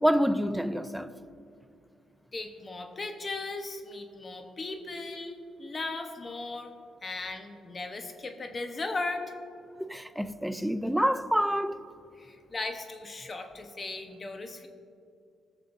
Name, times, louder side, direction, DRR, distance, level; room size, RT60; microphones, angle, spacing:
voice 1, 0.0-1.2 9.8-11.8, equal, ahead, 0.4 m, -27 dB
voice 2, 2.3-6.7 7.0-9.2 12.2-14.7, left 3 dB, 35° left, 1.0 m, -37 dB
19.0 x 6.5 x 2.6 m
cardioid pair, 90°, 0 cm